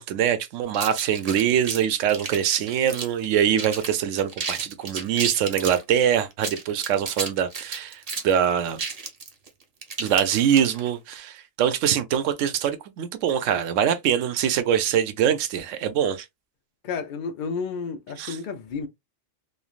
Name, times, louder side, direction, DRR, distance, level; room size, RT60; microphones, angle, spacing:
voice 1, 0.0-8.8 10.0-16.2 18.2-18.4, right 9 dB, 75° right, 0.9 m, -23 dB
sound 1, 0.7-3.3 3.6-3.9 4.2-5.8 6.3-10.9, right 4 dB, 40° right, 0.6 m, -32 dB
voice 2, 16.8-18.9, left 5 dB, 70° left, 0.4 m, -31 dB
3.2 x 2.3 x 2.3 m
omnidirectional pair, 1.3 m